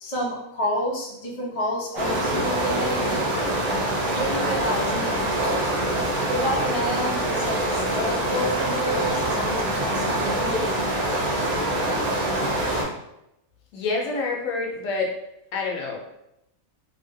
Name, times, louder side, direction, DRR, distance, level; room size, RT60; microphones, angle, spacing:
voice 1, 0.0-3.1 4.1-5.2 6.2-11.0, left 1 dB, 45° left, -4 dB, 0.4 m, -29 dB
sound 1, 2.0-12.8, right 1 dB, 60° right, 1.0 m, -25 dB
voice 2, 13.7-15.1 15.5-16.0, left 3 dB, 70° left, -1 dB, 0.9 m, -27 dB
2.7 x 2.6 x 2.6 m, 0.84 s
omnidirectional pair, 1.5 m